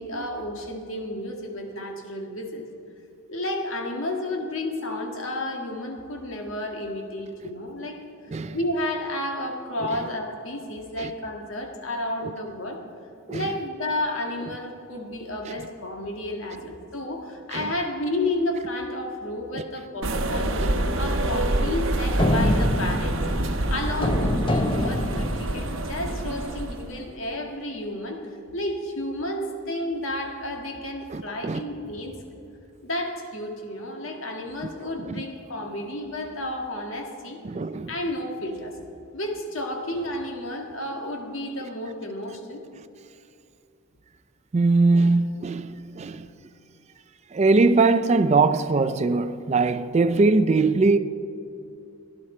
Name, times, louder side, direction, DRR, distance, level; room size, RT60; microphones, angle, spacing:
voice 1, 0.0-2.7 3.3-8.0 8.5-12.8 13.3-28.2 28.5-32.1 32.8-37.4 37.9-38.8 39.1-42.6, left 1 dB, 65° left, 1.7 m, -31 dB
sound 1, 20.0-27.0, right 1 dB, 70° right, 0.9 m, -26 dB
sound 2, 21.2-26.1, left 1 dB, 25° left, 0.6 m, -27 dB
voice 2, 31.1-31.6 35.1-35.2 37.4-37.9 44.5-46.3 47.3-51.0, right 3 dB, 30° right, 0.4 m, -21 dB
17.0 x 11.0 x 4.4 m
head